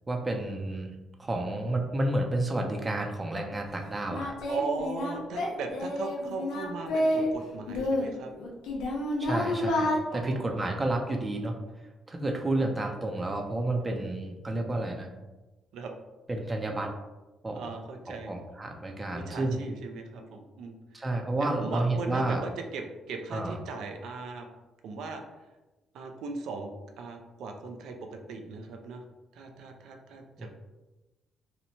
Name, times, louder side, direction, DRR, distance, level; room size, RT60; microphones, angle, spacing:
voice 1, 0.1-4.3 9.2-11.6 12.1-15.1 16.3-16.9 17.4-17.8 18.1-19.6 20.9-22.5 23.3-23.6 30.4-30.5, right 2 dB, 25° right, 3 dB, 0.5 m, -30 dB
Singing, 3.5-3.6 4.1-7.3 7.7-10.0, left 1 dB, 85° left, 0.5 m, -29 dB
voice 2, 4.5-8.3 10.1-10.5 15.7-15.9 17.6-18.3 19.1-21.0 21.6-24.5 24.8-25.2 25.9-26.7 27.0-29.0 29.3-30.5, right 4 dB, 80° right, 4 dB, 0.4 m, -38 dB
2.7 x 2.1 x 2.8 m, 1.1 s
cardioid pair, 90°, 0 cm